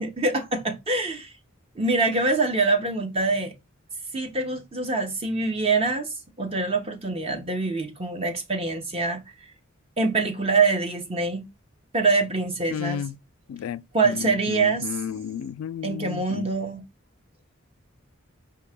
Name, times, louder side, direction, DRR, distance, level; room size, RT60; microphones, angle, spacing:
voice 1, 0.0-1.3 1.7-3.5 4.1-9.2 10.0-11.5 11.9-13.0 13.9-14.9 15.8-16.8, right 3 dB, 30° right, 0.8 m, -25 dB
voice 2, 12.7-13.1 13.5-16.5, left 8 dB, 85° left, 0.3 m, -33 dB
4.7 x 2.8 x 3.4 m
head